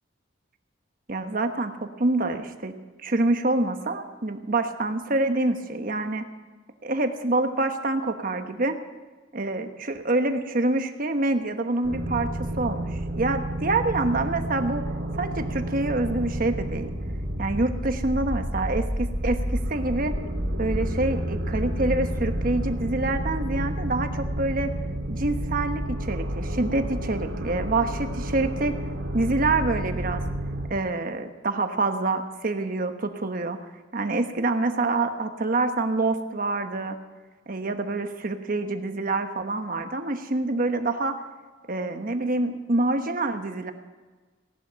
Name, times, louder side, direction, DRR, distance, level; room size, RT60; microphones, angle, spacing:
voice 1, 1.1-2.7 3.0-6.3 6.8-8.8 9.3-12.3 12.6-14.8 15.2-16.9 17.4-20.1 20.6-24.7 25.1-28.7 29.1-30.2 30.7-33.6 33.9-37.0 37.5-41.2 41.7-43.7, right 2 dB, 50° right, 7 dB, 1.2 m, -26 dB
sound 1, 11.8-30.7, right 1 dB, 85° right, 2.3 m, -30 dB
17.0 x 11.5 x 5.8 m, 1.3 s
head